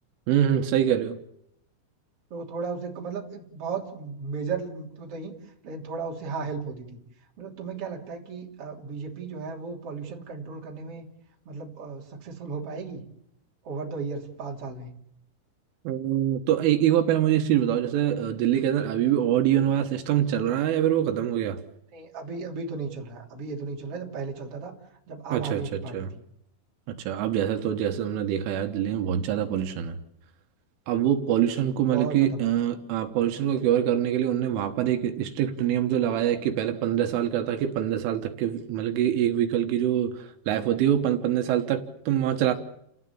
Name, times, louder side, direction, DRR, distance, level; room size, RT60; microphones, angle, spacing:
voice 1, 0.3-1.2 15.9-21.6 25.3-26.1 26.9-30.0 30.9-42.5, right 10 dB, 80° right, 3.8 m, -24 dB
voice 2, 2.3-5.4 5.6-7.0 7.4-11.1 11.5-13.0 13.6-15.0 21.9-24.7 25.1-26.1 31.8-32.5, right 4 dB, 35° right, 3.5 m, -35 dB
29.5 x 16.5 x 8.5 m
omnidirectional pair, 5.7 m